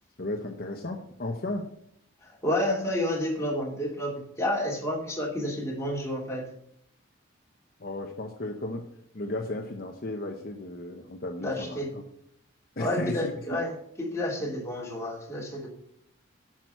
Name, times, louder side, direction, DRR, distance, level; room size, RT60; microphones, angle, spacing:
voice 1, 0.2-1.7 7.8-8.9 9.1-12.0 12.8-13.6, left 2 dB, 50° left, 3 dB, 0.9 m, -34 dB
voice 2, 2.2-6.5 11.4-11.9 12.8-13.7 14.0-15.7, left 1 dB, 15° left, -2 dB, 2.5 m, -30 dB
9.1 x 6.0 x 7.9 m, 0.71 s
head